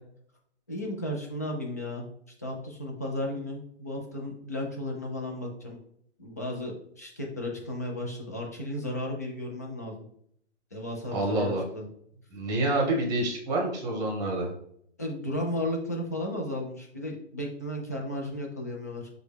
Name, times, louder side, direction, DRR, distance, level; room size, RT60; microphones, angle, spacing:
voice 1, 0.7-2.0 2.4-5.8 6.2-10.0 10.7-11.9 15.0-19.1, left 1 dB, 15° left, 0 dB, 0.3 m, -34 dB
voice 2, 11.1-11.6 12.3-14.5, right 2 dB, 10° right, 0 dB, 1.1 m, -27 dB
6.6 x 2.2 x 3.4 m, 0.68 s
figure-of-eight pair, 135°, 35 cm